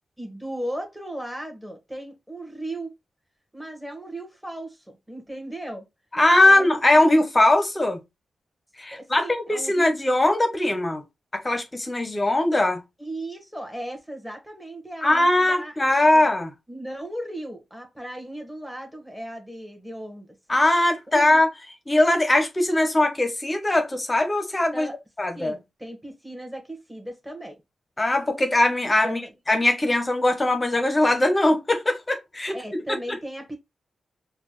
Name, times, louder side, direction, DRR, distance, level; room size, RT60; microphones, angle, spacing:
voice 1, 0.2-3.0 3.5-5.9 6.4-7.1 8.9-9.9 13.0-15.7 16.1-16.3 16.7-20.3 21.1-21.4 24.7-25.0 25.3-27.6 29.0-29.3 32.5-33.6, right 1 dB, 5° right, 1.5 m, -36 dB
voice 2, 6.1-8.0 8.8-11.0 11.4-12.8 15.0-16.5 20.5-21.5 21.9-24.9 25.2-25.6 28.0-29.2 29.5-32.5, left 1 dB, 25° left, 0.9 m, -20 dB
4.3 x 2.3 x 3.1 m
cardioid pair, 65°, 0 cm